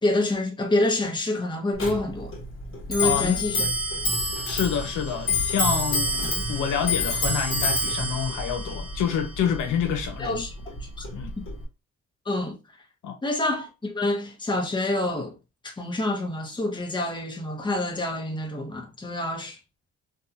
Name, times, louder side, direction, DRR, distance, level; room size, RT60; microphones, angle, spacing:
voice 1, 0.0-2.3 2.9-3.7 10.2-10.5 10.8-10.9 12.3-12.6 13.2-15.3 15.6-19.6, left 2 dB, 15° left, 0.8 m, -27 dB
Clock, 1.8-11.6, left 1 dB, 45° left, 1.2 m, -28 dB
voice 2, 3.0-3.4 4.4-10.4 11.1-11.3 13.0-13.2, left 8 dB, 80° left, 0.7 m, -28 dB
2.6 x 2.3 x 2.7 m
cardioid pair, 90°, 30 cm